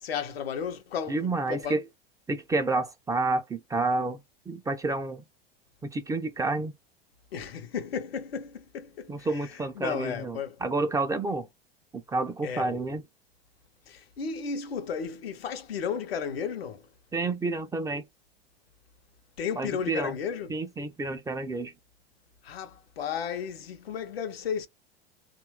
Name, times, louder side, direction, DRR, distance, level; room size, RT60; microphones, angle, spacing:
voice 1, 0.0-1.8 7.3-9.3 9.8-10.6 12.4-12.8 13.9-16.9 19.4-20.6 22.4-24.7, left 7 dB, 75° left, 0.8 m, -34 dB
voice 2, 1.1-1.8 2.3-5.2 5.8-6.7 9.1-11.5 11.9-13.0 17.1-18.0 19.6-20.1 20.5-21.7, right 3 dB, 10° right, 0.4 m, -29 dB
3.0 x 2.4 x 2.9 m
hypercardioid pair, 85°, 30 cm